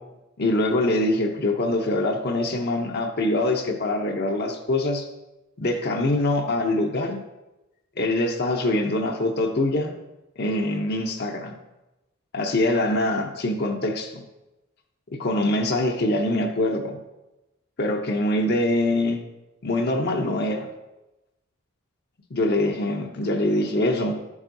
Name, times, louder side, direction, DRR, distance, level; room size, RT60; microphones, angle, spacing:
voice 1, 0.4-5.1 5.6-7.2 8.0-9.9 10.4-11.5 12.3-14.2 15.1-17.0 17.8-19.2 19.6-20.7 22.3-24.2, left 1 dB, 45° left, 3 dB, 0.7 m, -24 dB
11.0 x 7.2 x 2.7 m, 0.99 s
head